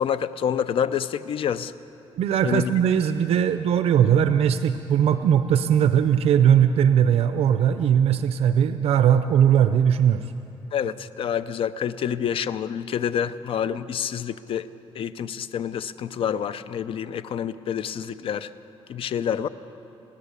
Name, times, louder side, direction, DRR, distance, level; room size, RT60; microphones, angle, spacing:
voice 1, 0.0-1.7 2.4-2.7 10.7-14.7 15.0-18.5 18.9-19.5, left 8 dB, 60° left, 14 dB, 0.6 m, -27 dB
voice 2, 2.2-10.2, right 9 dB, 80° right, 10 dB, 0.6 m, -19 dB
29.5 x 10.5 x 8.2 m, 2.8 s
wide cardioid pair, 165°, 10 cm